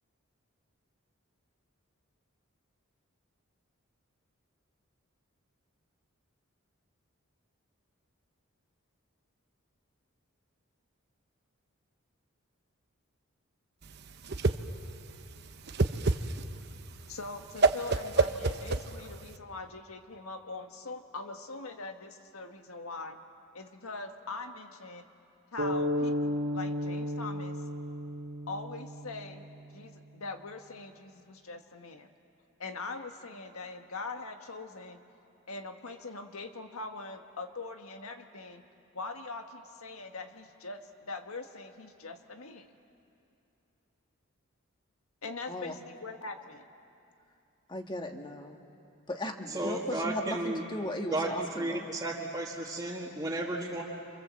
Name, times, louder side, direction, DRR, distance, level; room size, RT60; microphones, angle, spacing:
Whoosh swoosh swish, 13.9-19.4, right 3 dB, 50° right, 0.8 m, -29 dB
voice 1, 17.1-23.2 23.5-25.1 25.5-27.6 28.5-29.5 29.7-32.1 32.6-35.0 35.5-38.6 38.9-42.7 45.2-46.7, left 3 dB, 85° left, 6 dB, 1.6 m, -42 dB
sound 1, 25.6-29.5, left 1 dB, 70° right, 3.0 m, -33 dB
voice 2, 47.7-48.6 49.1-51.9, left 1 dB, 20° left, 4 dB, 1.6 m, -37 dB
voice 3, 49.5-50.6 51.1-51.3 51.6-53.8, right 2 dB, 20° right, -6 dB, 1.9 m, -33 dB
28.0 x 26.5 x 7.7 m, 2.7 s
head